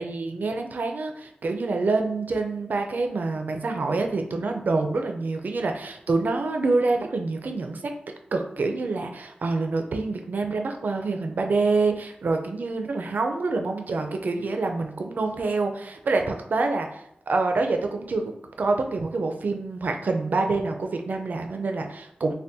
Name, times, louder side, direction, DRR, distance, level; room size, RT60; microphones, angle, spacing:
voice 1, 0.0-7.9 8.3-18.3 18.6-22.3, right 3 dB, 65° right, 4 dB, 0.4 m, -26 dB
3.5 x 2.2 x 2.6 m, 0.76 s
wide cardioid pair, 120°, 3 cm